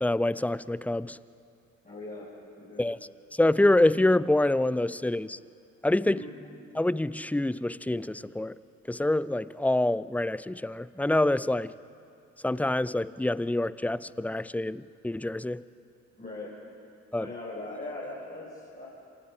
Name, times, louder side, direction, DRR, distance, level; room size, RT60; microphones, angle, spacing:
voice 1, 0.0-1.2 2.8-3.0 3.4-5.4 5.8-6.2 6.7-8.6 8.9-11.7 12.4-15.6 17.1-17.3, left 1 dB, 5° left, 19 dB, 0.4 m, -26 dB
voice 2, 1.8-2.8 6.0-6.3 16.2-16.5 17.2-18.9, left 2 dB, 20° left, -7 dB, 6.4 m, -40 dB
26.0 x 18.5 x 5.3 m, 2.4 s
hypercardioid pair, 40°, 39 cm